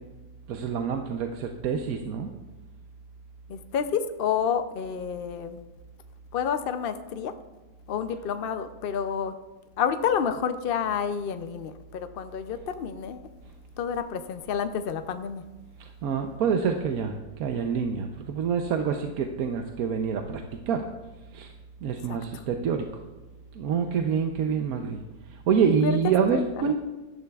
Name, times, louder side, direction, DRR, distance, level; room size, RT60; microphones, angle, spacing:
voice 1, 0.5-2.3 15.8-20.9 21.3-21.5 21.8-22.9 23.5-25.0 25.3-26.7, right 6 dB, 70° right, 4 dB, 1.2 m, -27 dB
voice 2, 3.5-5.6 6.3-7.3 7.9-9.3 9.8-13.3 13.8-15.4 22.1-22.4 25.8-26.0 26.3-26.4, left 7 dB, 70° left, 9 dB, 0.5 m, -29 dB
16.5 x 12.5 x 2.4 m, 1.1 s
omnidirectional pair, 1.7 m